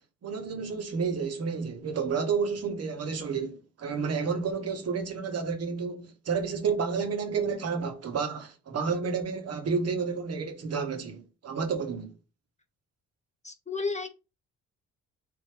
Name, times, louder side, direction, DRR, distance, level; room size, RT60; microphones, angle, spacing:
voice 1, 0.2-12.1, right 5 dB, 55° right, 1.1 m, -30 dB
voice 2, 13.4-14.1, left 4 dB, 25° left, 0.7 m, -32 dB
3.8 x 3.4 x 3.3 m
cardioid pair, 90°, 30 cm